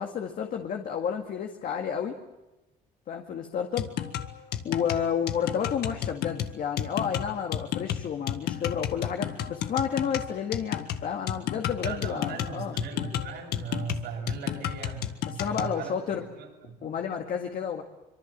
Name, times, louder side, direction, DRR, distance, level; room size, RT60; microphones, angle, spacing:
voice 1, 0.0-2.2 3.1-3.9 4.6-12.8 15.2-16.2 16.8-17.8, left 7 dB, 55° left, 3 dB, 2.0 m, -31 dB
sound 1, 3.8-15.8, left 11 dB, 75° left, 1.7 m, -32 dB
voice 2, 11.8-16.0 16.4-16.9, right 5 dB, 80° right, 2 dB, 7.3 m, -38 dB
25.5 x 23.5 x 7.5 m, 1.0 s
cardioid pair, 110°, 17 cm